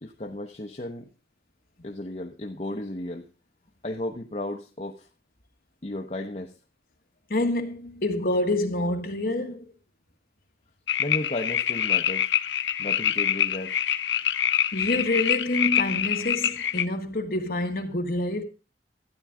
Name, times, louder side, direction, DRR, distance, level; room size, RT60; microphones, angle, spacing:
voice 1, 0.0-1.1 1.8-3.3 3.8-5.1 5.8-6.5 11.0-12.3 12.8-13.8, left 1 dB, 40° left, 0.8 m, -34 dB
voice 2, 7.3-9.7 14.7-18.4, left 1 dB, 55° left, 1.6 m, -27 dB
sound 1, 10.9-16.9, left 10 dB, 85° left, 0.5 m, -25 dB
12.5 x 10.0 x 3.7 m
head